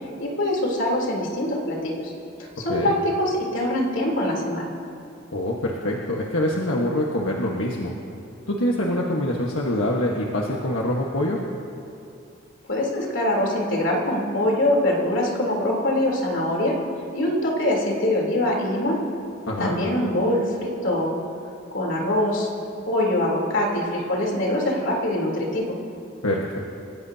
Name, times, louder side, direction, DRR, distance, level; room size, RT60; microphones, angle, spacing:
voice 1, 0.2-2.1 2.4-4.7 12.7-16.8 17.1-19.0 19.6-21.2 21.7-22.5 22.9-25.7, left 1 dB, 70° left, -2 dB, 3.5 m, -23 dB
voice 2, 5.3-7.9 8.5-11.4 19.5-19.8 26.2-26.6, left 1 dB, 90° left, -2 dB, 1.4 m, -25 dB
29.5 x 15.5 x 2.8 m, 2.7 s
head